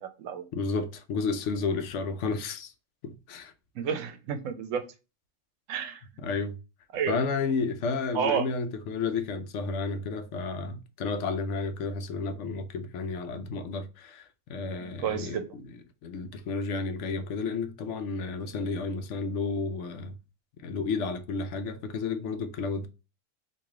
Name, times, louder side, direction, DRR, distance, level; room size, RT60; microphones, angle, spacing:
voice 1, 0.0-0.5 3.7-4.8 5.7-6.0 6.9-7.2 8.1-8.5 14.8-15.5, right 8 dB, 80° right, 1.0 m, -30 dB
voice 2, 0.5-2.7 3.0-3.5 6.2-6.6 7.1-15.4 16.0-20.2 20.6-22.9, left 4 dB, 70° left, 0.9 m, -32 dB
3.1 x 2.6 x 3.5 m
omnidirectional pair, 1.3 m